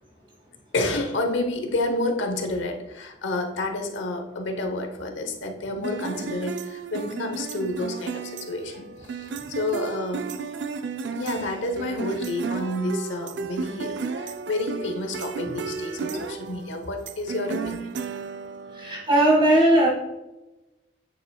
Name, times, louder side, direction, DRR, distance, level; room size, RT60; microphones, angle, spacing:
voice 1, 0.7-10.3 11.1-17.9, left 2 dB, 85° left, 4 dB, 0.9 m, -29 dB
sound 1, 5.8-19.0, right 5 dB, 70° right, 0.4 m, -34 dB
voice 2, 18.7-19.9, right 1 dB, 25° right, -2 dB, 1.8 m, -18 dB
8.1 x 6.8 x 2.3 m, 1.0 s
head